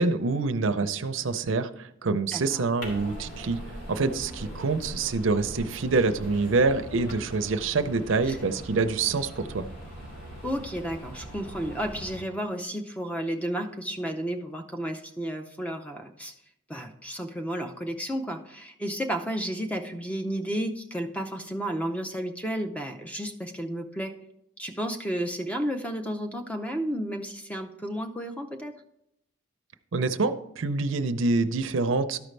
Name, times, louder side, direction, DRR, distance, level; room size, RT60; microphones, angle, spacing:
voice 1, 0.0-3.6 3.9-9.7 29.9-32.2, right 3 dB, 70° right, 10 dB, 0.6 m, -26 dB
voice 2, 2.3-2.7 8.3-8.6 10.4-16.3 16.7-24.2 24.6-28.8, equal, 5° left, 6 dB, 0.6 m, -32 dB
sound 1, 2.8-12.2, equal, 65° left, 2.7 m, -41 dB
13.0 x 5.2 x 3.3 m, 0.78 s
head